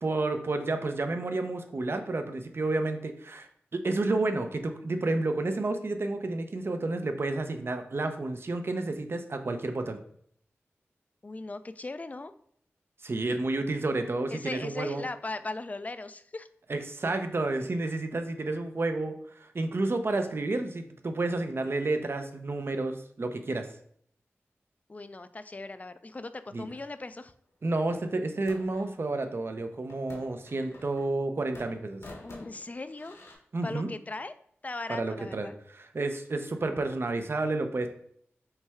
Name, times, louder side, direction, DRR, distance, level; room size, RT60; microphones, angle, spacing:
voice 1, 0.0-10.0 13.0-15.1 16.7-23.7 26.5-26.7 27.6-32.0 33.5-33.9 34.9-37.9, right 2 dB, 55° right, 7 dB, 0.5 m, -30 dB
voice 2, 11.2-12.3 14.3-16.5 24.9-27.3 32.2-33.2 33.6-34.3 34.6-35.5, left 2 dB, 30° left, 12 dB, 0.3 m, -38 dB
sound 1, 27.9-28.9 29.9-31.2 31.5-33.3, left 2 dB, 70° left, 1.1 m, -49 dB
5.5 x 2.3 x 3.4 m, 0.65 s
cardioid pair, 40°, 5 cm